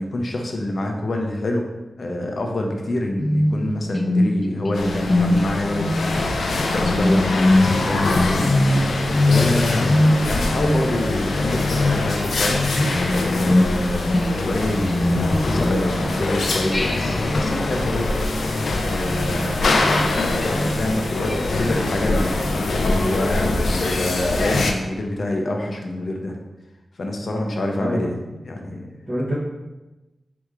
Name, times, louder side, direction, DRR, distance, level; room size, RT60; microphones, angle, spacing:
voice 1, 0.0-1.7 2.0-12.6 13.3-18.3 18.8-23.4 23.9-26.4 27.0-28.2 28.4-28.9, left 1 dB, 50° left, 2 dB, 0.7 m, -26 dB
sound 1, 3.2-16.3 16.7-22.6, left 1 dB, 25° left, 0.3 m, -23 dB
sound 2, 4.7-24.7, left 2 dB, 85° left, 0.5 m, -24 dB
voice 2, 9.4-10.2 27.8-28.1 29.1-29.3, equal, 25° right, -9 dB, 0.8 m, -27 dB
sound 3, 11.8-23.7, right 1 dB, 75° right, 1.3 m, -45 dB
3.5 x 3.0 x 4.7 m, 1.0 s
wide cardioid pair, 140°, 0 cm